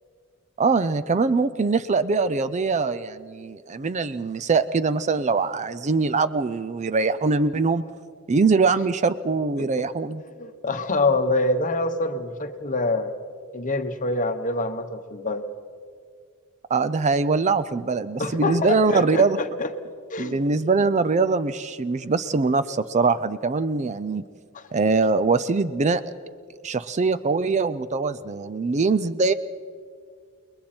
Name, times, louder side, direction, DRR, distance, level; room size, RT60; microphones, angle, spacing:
voice 1, 0.6-7.9 8.3-10.2 16.7-19.4 20.2-24.2 24.7-26.0 26.6-29.3, right 4 dB, 30° right, 13 dB, 0.4 m, -22 dB
voice 2, 10.4-13.1 13.5-15.4 18.2-19.7 20.1-20.4 24.5-24.6, left 2 dB, 35° left, 7 dB, 1.2 m, -25 dB
29.5 x 21.0 x 4.4 m, 2.1 s
head